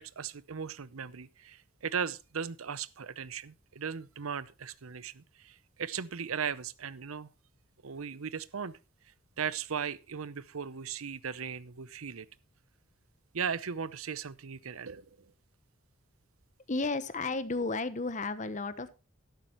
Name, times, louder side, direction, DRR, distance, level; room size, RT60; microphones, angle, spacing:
voice 1, 0.0-7.3 7.8-8.8 9.4-12.3 13.3-15.3, right 6 dB, 85° right, 0.7 m, -37 dB
voice 2, 16.7-18.9, left 3 dB, 35° left, 1.0 m, -33 dB
13.0 x 12.0 x 3.0 m
head